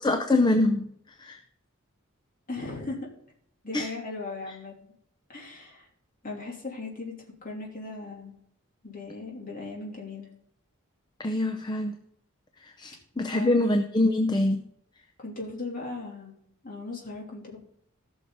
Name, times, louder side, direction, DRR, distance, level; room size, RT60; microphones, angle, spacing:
voice 1, 0.0-0.9 1.2-1.4 3.7-3.9 4.5-4.6 11.2-12.0 12.6-14.6, left 2 dB, 20° left, 6 dB, 0.6 m, -25 dB
voice 2, 2.5-3.0 3.6-4.7 5.3-5.9 6.2-7.1 7.4-8.3 8.8-10.3 13.3-13.6 15.2-16.4 16.6-17.6, left 3 dB, 40° left, -2 dB, 3.1 m, -37 dB
16.5 x 6.3 x 4.0 m, 0.71 s
head